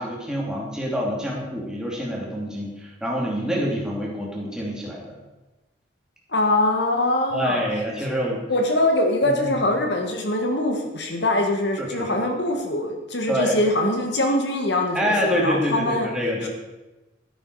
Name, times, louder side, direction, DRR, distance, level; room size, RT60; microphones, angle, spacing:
voice 1, 0.0-5.1 7.3-8.4 9.2-9.6 11.8-12.3 13.3-13.5 14.9-16.5, equal, 5° right, -3 dB, 2.8 m, -26 dB
voice 2, 6.3-7.6 8.5-16.1 16.4-16.5, left 1 dB, 60° left, 3 dB, 1.6 m, -23 dB
12.5 x 11.0 x 4.8 m, 1.1 s
head